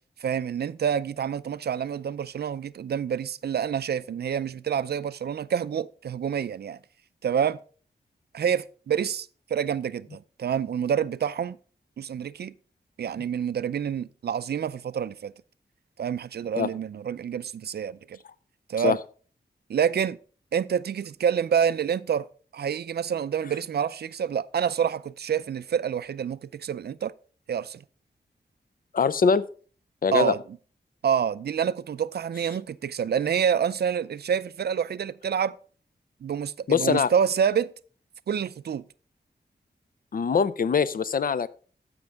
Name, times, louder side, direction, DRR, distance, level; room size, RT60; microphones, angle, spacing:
voice 1, 0.2-6.8 7.2-7.6 8.3-11.6 12.0-12.5 13.0-15.3 16.0-18.2 18.7-19.0 19.7-20.2 20.5-22.3 22.5-27.1 27.5-27.8 30.1-30.4 31.0-35.6 36.2-37.7 38.3-38.8, right 8 dB, 70° right, 0.4 m, -27 dB
voice 2, 28.9-29.4 30.0-30.3 36.7-37.1 40.1-41.5, left 6 dB, 55° left, 0.6 m, -22 dB
14.5 x 5.3 x 3.5 m
wide cardioid pair, 100°, 17 cm